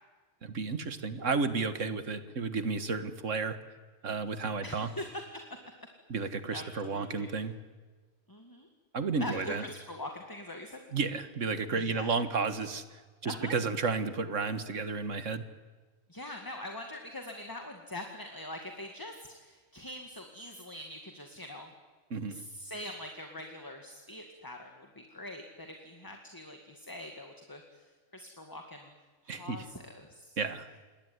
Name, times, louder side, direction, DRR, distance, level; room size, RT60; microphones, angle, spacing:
voice 1, 0.4-3.6 4.0-4.9 6.1-7.5 8.9-9.6 10.9-12.8 13.2-15.4 22.1-22.4 29.3-29.7 30.4-30.7, right 4 dB, 75° right, 11 dB, 1.9 m, -32 dB
voice 2, 4.6-5.0 5.3-5.4 6.5-7.3 8.3-8.7 9.2-10.8 11.7-12.1 13.2-13.5 16.1-21.7 22.3-27.9 28.1-28.9 29.2-30.4, left 1 dB, 15° left, 4 dB, 2.1 m, -43 dB
27.5 x 21.0 x 9.6 m, 1.4 s
omnidirectional pair, 1.3 m